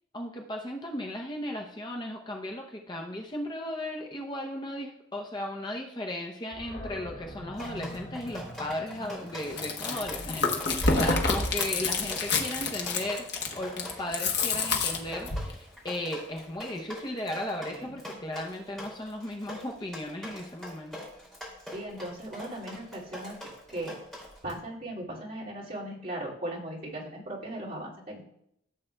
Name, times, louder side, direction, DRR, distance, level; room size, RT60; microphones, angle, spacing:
voice 1, 0.1-21.0, left 1 dB, 20° left, 1 dB, 0.7 m, -36 dB
Animal, 6.5-13.6, equal, 40° left, 2.6 m, -46 dB
Drip, 7.5-24.6, equal, 5° left, 2.6 m, -43 dB
Chewing mastication, 9.4-15.5, left 4 dB, 55° left, 1.1 m, -28 dB
voice 2, 21.7-23.4 23.7-24.0 24.4-28.2, right 1 dB, 45° right, -6 dB, 2.3 m, -38 dB
14.5 x 7.5 x 2.2 m, 0.76 s
head